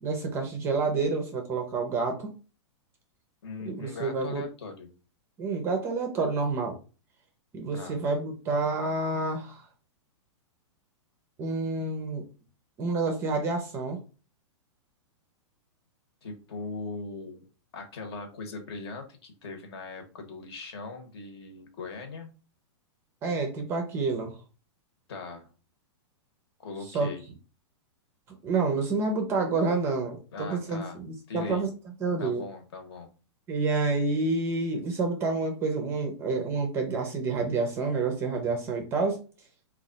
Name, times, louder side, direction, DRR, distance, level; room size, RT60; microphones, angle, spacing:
voice 1, 0.0-2.3 3.7-4.4 5.4-6.8 7.5-9.6 11.4-12.2 12.8-14.0 23.2-24.4 26.9-27.1 28.4-31.7 32.0-32.4 33.5-39.2, right 3 dB, 15° right, 4 dB, 0.4 m, -28 dB
voice 2, 3.4-4.9 7.7-8.0 16.2-17.4 17.7-22.3 25.1-25.5 26.6-27.2 30.3-31.0 31.3-31.7 32.2-33.1, left 3 dB, 60° left, 5 dB, 1.0 m, -40 dB
3.1 x 2.3 x 3.8 m, 0.34 s
supercardioid pair, 165°, 16 cm